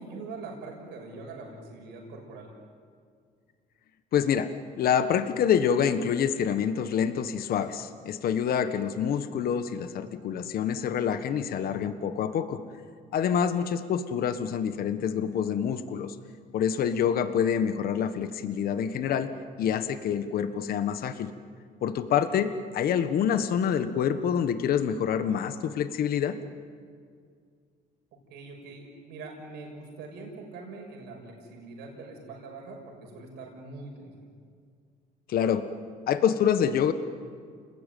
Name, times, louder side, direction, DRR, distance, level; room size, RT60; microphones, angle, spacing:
voice 1, 0.0-2.5 28.3-34.2, right 3 dB, 85° right, 0 dB, 6.3 m, -43 dB
voice 2, 4.1-4.5 4.8-12.6 13.1-16.1 16.5-19.3 19.6-21.3 21.8-26.4 35.3-35.7 36.1-36.9, left 8 dB, 60° left, 10 dB, 1.4 m, -26 dB
30.0 x 20.0 x 9.3 m, 2.1 s
cardioid pair, 110°, 17 cm